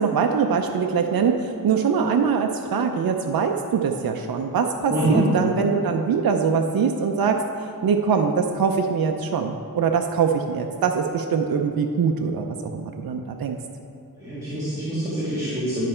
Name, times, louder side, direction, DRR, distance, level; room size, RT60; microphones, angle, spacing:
voice 1, 0.0-7.4 7.8-13.6, right 6 dB, 75° right, 4 dB, 0.6 m, -23 dB
voice 2, 4.9-5.3 14.2-15.9, right 1 dB, 10° right, -11 dB, 1.9 m, -25 dB
10.5 x 5.4 x 4.4 m, 2.4 s
wide cardioid pair, 105°, 37 cm